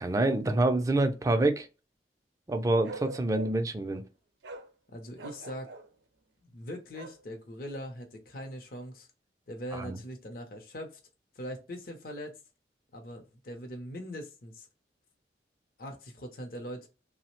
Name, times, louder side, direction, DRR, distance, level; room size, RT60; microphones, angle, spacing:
voice 1, 0.0-1.7 2.5-4.0 9.7-10.0, right 2 dB, 20° right, 0.3 m, -27 dB
Bark, 2.8-3.7 4.4-4.7 5.2-5.9 6.9-7.2, right 3 dB, 75° right, 0.5 m, -43 dB
voice 2, 4.9-5.7 6.4-9.1 9.5-11.0 11.3-12.4 12.9-14.7 15.8-16.9, equal, 55° left, 0.6 m, -41 dB
3.0 x 2.0 x 2.9 m
head